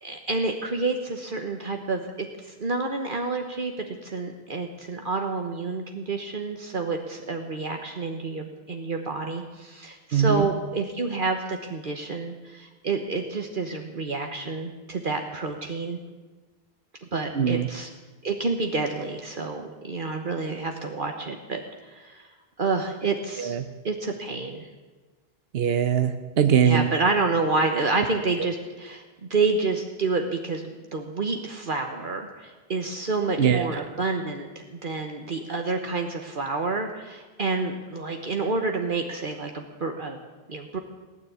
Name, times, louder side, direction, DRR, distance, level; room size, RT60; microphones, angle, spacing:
voice 1, 0.0-16.0 17.1-17.9 18.2-21.6 21.9-22.2 22.6-23.6 23.8-24.7 26.6-29.0 29.3-30.6 30.9-40.2 40.5-40.8, right 3 dB, 55° right, 4 dB, 1.3 m, -29 dB
voice 2, 10.1-10.5 17.4-17.7 23.4-23.6 25.5-26.9 33.4-33.7, right 8 dB, 75° right, 8 dB, 1.1 m, -21 dB
18.0 x 9.8 x 8.2 m, 1.3 s
omnidirectional pair, 1.0 m